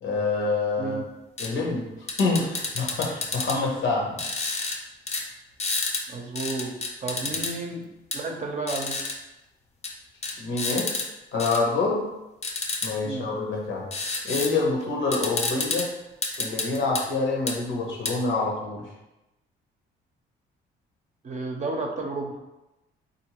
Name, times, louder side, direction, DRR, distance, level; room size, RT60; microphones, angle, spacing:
voice 1, 0.0-1.0 1.4-1.9 2.2-4.2 10.4-10.9 11.3-12.1 12.8-13.9 14.2-15.9 16.4-18.9, left 3 dB, 75° left, -1 dB, 1.0 m, -26 dB
sound 1, 1.4-1.5 2.1-3.6 4.2-4.8 5.1-5.2 5.6-6.0 6.4-7.5 8.1-8.2 8.7-9.1 9.8-9.9 10.2-11.1 11.4-11.6 12.4-12.9 13.9-14.5 14.8-14.9 15.1-15.9 16.2-17.0 17.5-17.6 18.1-18.2, left 3 dB, 35° left, 0.6 m, -29 dB
voice 2, 6.1-6.8 7.0-7.9 8.1-9.0 13.0-13.3 21.2-22.4, right 3 dB, 35° right, 1 dB, 0.7 m, -32 dB
3.7 x 2.6 x 2.9 m, 0.96 s
cardioid pair, 90°, 20 cm